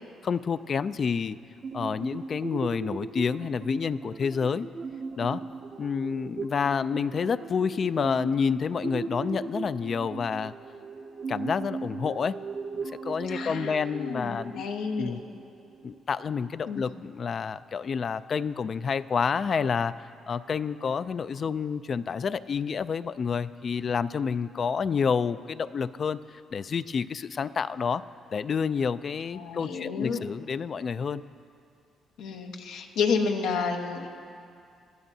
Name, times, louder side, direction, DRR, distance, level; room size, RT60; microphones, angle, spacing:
voice 1, 0.2-1.4 1.7-4.7 5.2-5.4 5.8-10.5 11.3-12.4 12.7-14.7 15.0-15.2 15.8-28.0 28.3-31.2, left 6 dB, 50° left, 14 dB, 0.3 m, -29 dB
sound 1, 1.6-16.0, right 4 dB, 50° right, 0.6 m, -38 dB
voice 2, 13.3-15.2 16.7-16.9 29.3-30.2 32.2-34.1, left 5 dB, 90° left, 3 dB, 1.0 m, -30 dB
20.0 x 12.5 x 2.7 m, 2.4 s
cardioid pair, 90°, 0 cm